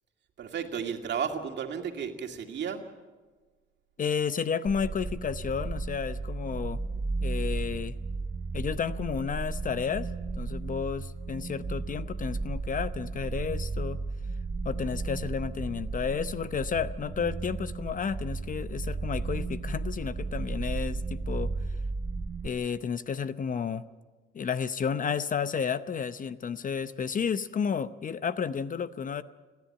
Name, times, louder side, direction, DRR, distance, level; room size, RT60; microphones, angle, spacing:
voice 1, 0.4-2.8, right 7 dB, 60° right, 4 dB, 2.3 m, -33 dB
voice 2, 4.0-6.8 7.2-8.0 8.5-10.1 10.4-14.0 14.6-21.5 22.4-23.9 24.3-29.2, left 6 dB, 40° left, 14 dB, 0.8 m, -32 dB
sound 1, 4.7-22.5, right 3 dB, 30° right, 1.0 m, -34 dB
30.0 x 10.5 x 8.7 m, 1.3 s
cardioid pair, 90°, 20 cm